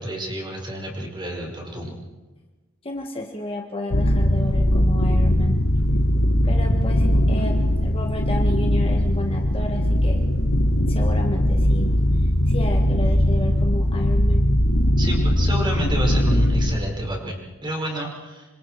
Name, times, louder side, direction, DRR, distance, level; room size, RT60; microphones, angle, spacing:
voice 1, 0.0-1.9 15.0-18.6, equal, 20° right, -1 dB, 5.3 m, -29 dB
voice 2, 2.8-5.6 6.4-10.2 10.9-11.9 12.5-14.5, left 1 dB, 25° left, 2 dB, 1.5 m, -32 dB
sound 1, 3.9-16.8, equal, 70° left, 1.7 m, -20 dB
26.5 x 25.5 x 4.6 m, 1.2 s
head